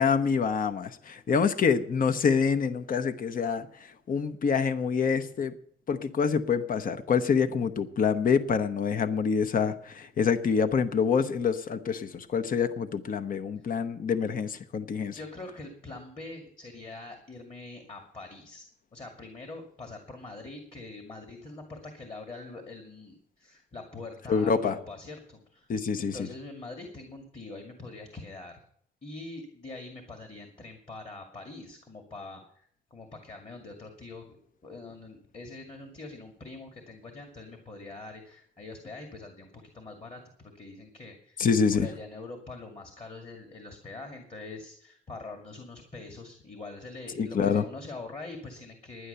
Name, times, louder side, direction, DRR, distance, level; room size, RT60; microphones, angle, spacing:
voice 1, 0.0-3.7 4.1-5.5 5.9-15.2 24.3-24.8 25.7-26.3 41.4-41.9 47.2-47.6, left 6 dB, 50° left, 9 dB, 0.9 m, -26 dB
voice 2, 15.1-25.7 26.0-28.6 29.0-34.4 34.6-41.4 41.7-49.1, left 3 dB, 30° left, 3 dB, 2.3 m, -44 dB
11.0 x 10.0 x 6.8 m, 0.63 s
cardioid pair, 130°, 19 cm